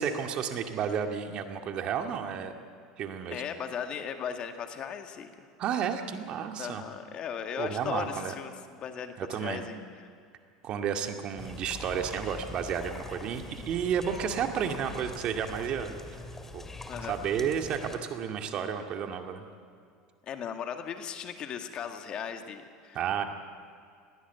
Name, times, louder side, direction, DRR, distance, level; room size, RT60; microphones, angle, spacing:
voice 1, 0.0-2.5 3.0-3.4 5.6-6.8 7.6-8.3 9.2-9.7 10.6-15.9 16.5-16.7 17.1-19.4 22.9-23.2, right 7 dB, 50° right, 5 dB, 2.1 m, -32 dB
voice 2, 3.3-5.5 6.6-8.5 8.8-9.8 16.9-17.2 20.3-23.0, left 8 dB, 45° left, 6 dB, 2.0 m, -37 dB
sound 1, 11.4-18.0, left 2 dB, 15° left, 2.4 m, -43 dB
21.0 x 16.5 x 8.3 m, 2.3 s
hypercardioid pair, 90°, 2 cm